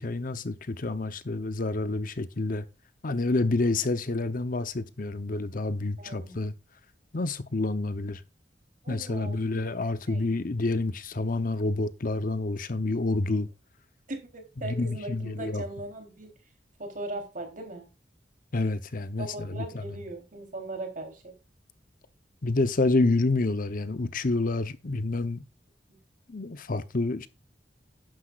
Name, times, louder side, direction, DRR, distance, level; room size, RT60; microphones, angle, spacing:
voice 1, 0.0-2.7 3.0-6.5 7.1-8.2 8.9-13.5 14.6-15.6 18.5-19.8 22.4-25.4 26.3-27.3, left 2 dB, 50° left, 0.8 m, -28 dB
voice 2, 6.0-6.4 8.8-9.6 10.1-10.3 14.1-16.3 16.8-17.9 19.2-21.3, right 2 dB, 50° right, 3.6 m, -39 dB
11.5 x 9.9 x 2.5 m
head